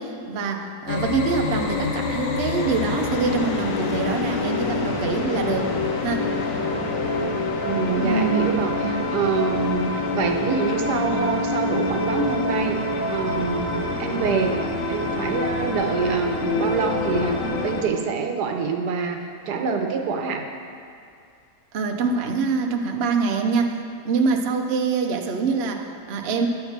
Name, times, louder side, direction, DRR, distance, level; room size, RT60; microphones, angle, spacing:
voice 1, 0.0-5.7 6.0-6.7 8.0-9.0 21.7-26.5, right 4 dB, 55° right, 3 dB, 0.7 m, -25 dB
sound 1, 0.9-17.8, left 3 dB, 60° left, 1.0 m, -26 dB
voice 2, 7.6-12.8 13.1-19.2 19.5-20.4, right 5 dB, 75° right, 4 dB, 1.3 m, -26 dB
11.5 x 4.8 x 6.5 m, 2.4 s
omnidirectional pair, 1.8 m